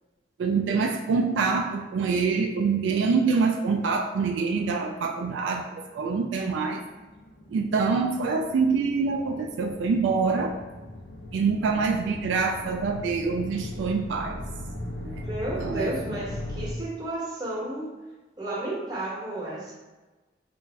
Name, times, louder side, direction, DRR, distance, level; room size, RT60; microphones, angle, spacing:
voice 1, 0.4-5.7 6.0-6.8 7.5-10.6 11.3-14.4 15.0-15.2 15.6-15.9, right 4 dB, 85° right, 3 dB, 0.3 m, -25 dB
sound 1, 6.4-16.7, left 1 dB, 60° left, 0.7 m, -39 dB
voice 2, 15.1-17.9 18.4-19.7, right 2 dB, 20° right, -6 dB, 1.0 m, -32 dB
3.1 x 2.5 x 3.4 m, 1.2 s
head